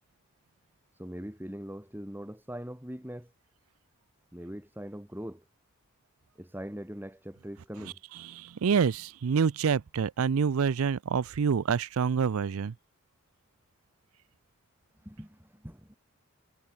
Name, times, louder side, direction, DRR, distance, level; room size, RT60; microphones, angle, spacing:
voice 1, 1.0-3.3 4.3-5.4 6.4-8.0 15.0-16.0, equal, 10° right, 2.0 m, -41 dB
voice 2, 7.8-12.7, right 6 dB, 80° right, 0.4 m, -27 dB
head